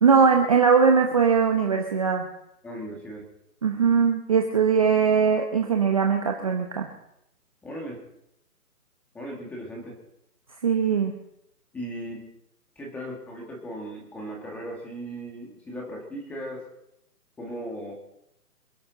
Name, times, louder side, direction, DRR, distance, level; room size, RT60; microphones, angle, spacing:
voice 1, 0.0-2.3 3.6-6.9 10.6-11.1, right 6 dB, 20° right, 3 dB, 1.0 m, -20 dB
voice 2, 2.6-3.3 7.6-8.0 9.1-10.0 11.7-12.3 12.8-16.7 17.4-17.9, right 1 dB, 5° left, -1 dB, 1.7 m, -37 dB
26.5 x 11.0 x 4.0 m, 0.81 s
hypercardioid pair, 165°, 48 cm